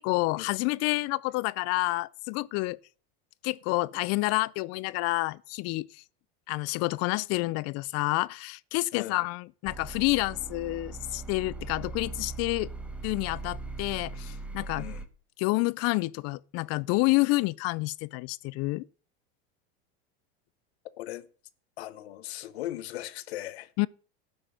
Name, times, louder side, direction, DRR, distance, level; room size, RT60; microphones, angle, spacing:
voice 1, 0.0-2.8 3.4-6.0 6.5-12.7 13.0-14.9 15.4-18.9 23.8-23.9, left 22 dB, 55° left, 0.6 m, -29 dB
sound 1, 9.7-15.1, right 3 dB, 5° right, 1.2 m, -39 dB
voice 2, 21.8-23.7, left 14 dB, 85° left, 1.2 m, -38 dB
13.0 x 6.4 x 9.2 m
supercardioid pair, 120°, 31 cm